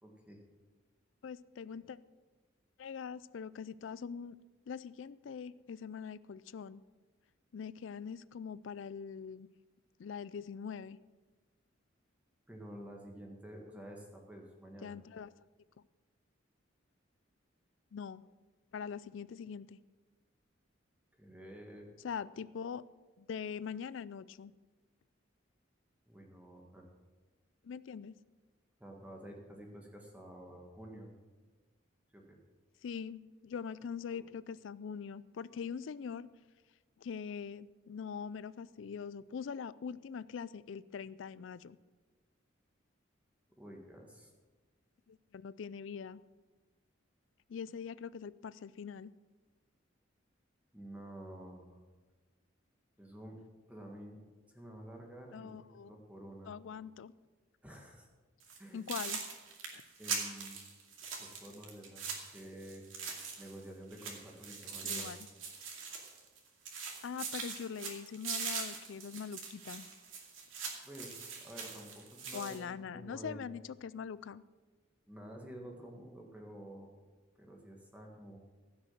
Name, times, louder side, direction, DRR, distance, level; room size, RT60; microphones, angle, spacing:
voice 1, 0.0-0.4 12.5-15.0 21.2-21.9 26.1-26.9 28.8-31.1 32.1-32.4 34.1-34.3 43.5-44.3 50.7-51.8 53.0-53.4 53.7-54.2 54.5-56.5 57.6-58.1 58.6-58.8 60.0-60.7 61.2-62.0 62.3-62.8 63.4-65.2 70.8-73.5 75.1-76.9 77.4-78.4, right 1 dB, 5° right, 1 dB, 1.7 m, -50 dB
voice 2, 1.2-2.0 2.8-4.4 4.7-6.8 7.5-9.5 10.0-11.0 14.8-15.3 17.9-18.2 18.7-19.8 22.0-22.8 23.2-24.5 27.6-28.1 32.8-36.3 37.0-41.8 45.1-46.2 47.5-49.1 55.3-55.9 56.5-57.1 58.7-59.2 59.7-59.8 64.8-65.3 67.0-69.9 72.3-74.4, left 6 dB, 70° left, 18 dB, 0.4 m, -43 dB
sound 1, 58.4-58.6 58.9-63.6 63.9-66.4 66.7-72.6, right 5 dB, 80° right, 2.4 m, -42 dB
15.5 x 6.3 x 7.5 m, 1.3 s
head